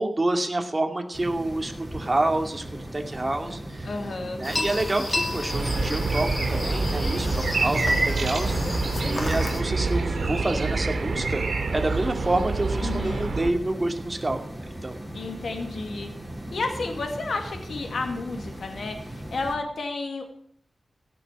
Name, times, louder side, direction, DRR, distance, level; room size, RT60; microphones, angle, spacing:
voice 1, 0.0-2.6 2.9-3.9 4.4-15.0, right 2 dB, 30° right, 4 dB, 2.4 m, -28 dB
sound 1, 1.1-19.6, right 1 dB, 10° right, 4.8 m, -38 dB
voice 2, 3.8-4.4 12.8-13.3 15.1-16.1 16.5-20.3, left 3 dB, 80° left, 4 dB, 2.3 m, -31 dB
sound 2, 4.4-9.6, left 2 dB, 35° left, 3.0 m, -31 dB
sound 3, 5.5-13.5, right 3 dB, 70° right, 3.1 m, -27 dB
16.0 x 6.9 x 9.8 m, 0.64 s
wide cardioid pair, 70°, 0 cm